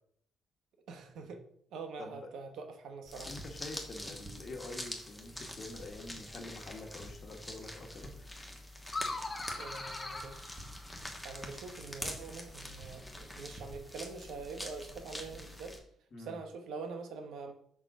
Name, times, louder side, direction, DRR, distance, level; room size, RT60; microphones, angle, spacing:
voice 1, 0.9-1.4 1.7-3.3 9.6-10.6 11.2-15.7 16.2-17.5, right 4 dB, 80° right, 5 dB, 1.0 m, -44 dB
voice 2, 2.0-2.3 3.3-8.5 16.1-16.4, left 2 dB, 45° left, 2 dB, 1.3 m, -46 dB
sound 1, 3.0-15.8, left 1 dB, 5° left, 1.3 m, -45 dB
sound 2, 8.9-11.4, left 2 dB, 30° left, 0.9 m, -40 dB
6.0 x 3.8 x 4.7 m, 0.66 s
cardioid pair, 90°, 0 cm